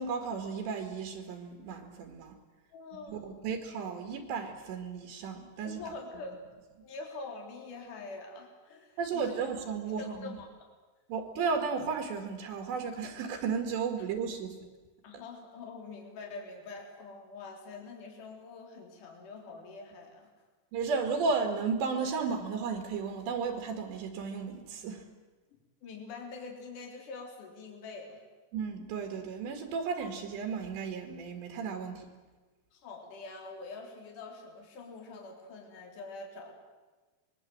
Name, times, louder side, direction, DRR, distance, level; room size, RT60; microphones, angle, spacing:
voice 1, 0.0-2.4 3.1-5.8 9.0-10.4 11.1-14.6 20.7-25.0 28.5-32.1, right 5 dB, 70° right, 4 dB, 4.2 m, -34 dB
voice 2, 2.7-3.3 5.6-6.4 6.8-9.5 10.0-10.5 15.0-20.3 25.8-28.2 32.7-36.5, left 3 dB, 45° left, 1 dB, 4.8 m, -45 dB
26.0 x 21.5 x 7.8 m, 1.3 s
omnidirectional pair, 5.3 m